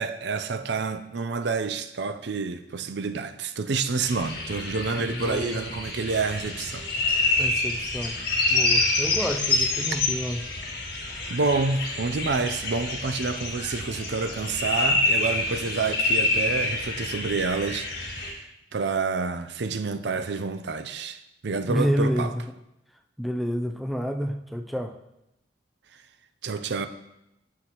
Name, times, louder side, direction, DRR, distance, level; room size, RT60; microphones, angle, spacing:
voice 1, 0.0-7.4 11.3-22.3 26.4-26.9, right 4 dB, 60° right, 0.5 m, -28 dB
sound 1, 4.1-18.3, left 3 dB, 55° left, 2.0 m, -27 dB
voice 2, 5.0-5.6 7.4-10.4 21.7-22.3 23.2-25.0, equal, ahead, 0.4 m, -29 dB
14.5 x 5.8 x 3.0 m
head